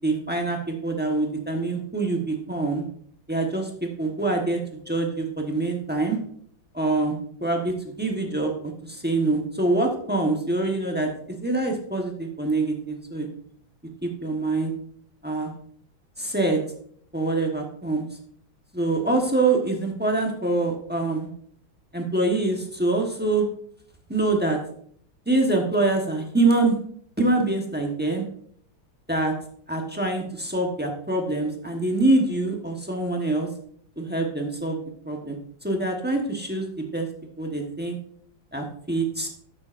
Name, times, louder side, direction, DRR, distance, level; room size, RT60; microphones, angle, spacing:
voice 1, 0.0-2.8 3.3-6.2 6.7-11.1 11.4-13.3 14.0-14.7 15.2-15.5 16.2-16.6 17.1-18.1 18.7-21.3 21.9-23.5 24.1-24.6 25.3-26.8 27.2-28.2 29.1-29.3 29.7-33.5 34.0-34.8 35.0-37.1 37.4-38.0 38.5-39.3, right 2 dB, 10° right, 1 dB, 0.5 m, -25 dB
12.0 x 8.5 x 2.5 m, 0.63 s
omnidirectional pair, 2.2 m